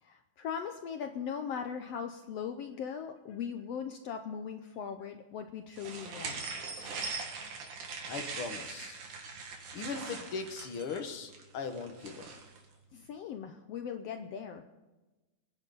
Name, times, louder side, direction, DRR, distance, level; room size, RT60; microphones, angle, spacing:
voice 1, 0.0-6.4 12.9-14.6, left 7 dB, 80° left, 7 dB, 1.4 m, -39 dB
sound 1, 5.8-12.6, right 4 dB, 70° right, 3.4 m, -41 dB
voice 2, 8.0-9.0 9.7-12.3, left 5 dB, 55° left, 6 dB, 1.6 m, -39 dB
25.0 x 10.5 x 4.1 m, 1.1 s
omnidirectional pair, 3.8 m